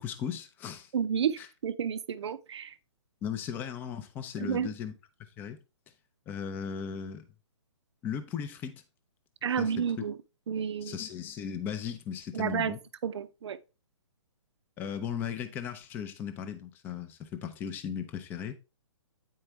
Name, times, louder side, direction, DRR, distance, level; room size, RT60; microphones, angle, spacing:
voice 1, 0.0-0.9 1.4-1.5 3.2-4.9 5.4-5.6 6.3-7.2 8.0-8.8 9.6-10.0 10.8-12.8 14.8-18.5, left 8 dB, 10° left, 0.5 m, -37 dB
voice 2, 0.9-2.7 4.4-4.7 9.4-10.2 10.5-11.0 12.3-12.8 13.0-13.6, right 7 dB, 65° right, 0.6 m, -31 dB
8.8 x 4.7 x 3.2 m
hypercardioid pair, 155°, 16 cm